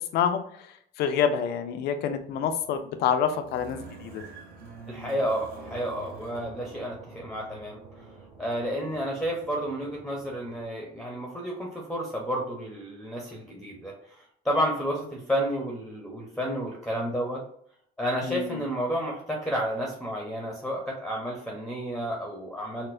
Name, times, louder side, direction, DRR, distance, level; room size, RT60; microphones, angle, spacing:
voice 1, 0.1-4.2 18.2-18.6, left 7 dB, 75° left, 7 dB, 0.5 m, -27 dB
sound 1, 2.1-10.6, right 3 dB, 65° right, 1.0 m, -46 dB
voice 2, 4.9-8.1 8.4-17.4 18.0-22.9, equal, ahead, 0 dB, 0.7 m, -31 dB
4.1 x 2.1 x 2.5 m, 0.65 s
cardioid pair, 110°, 17 cm